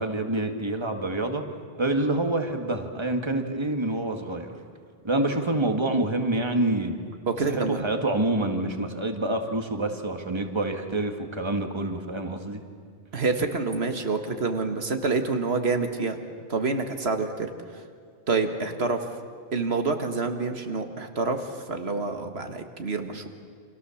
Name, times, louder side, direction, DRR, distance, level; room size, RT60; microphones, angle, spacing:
voice 1, 0.0-1.4 1.8-4.5 5.0-7.0 7.4-12.6, right 2 dB, 25° right, 5 dB, 1.9 m, -27 dB
voice 2, 7.3-7.8 13.1-16.2 16.5-17.5 18.3-19.0 19.5-23.3, right 4 dB, 80° right, 6 dB, 1.9 m, -27 dB
29.5 x 26.0 x 7.2 m, 2.1 s
omnidirectional pair, 1.0 m